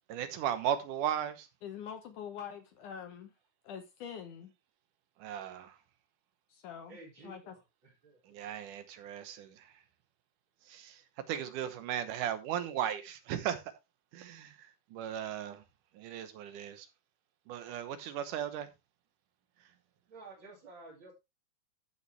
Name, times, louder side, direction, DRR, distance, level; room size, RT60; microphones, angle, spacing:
voice 1, 0.1-1.5 5.2-5.8 8.3-9.7 10.7-11.0 11.3-13.6 14.1-15.6 15.9-16.9 17.5-18.7, right 10 dB, 70° right, 2.3 m, -36 dB
voice 2, 1.6-3.3 3.6-4.5 6.5-7.0 7.2-7.6, left 8 dB, 70° left, 2.1 m, -44 dB
voice 3, 6.9-8.4 20.1-21.1, right 3 dB, 35° right, 2.7 m, -52 dB
14.0 x 5.8 x 3.3 m
omnidirectional pair, 4.3 m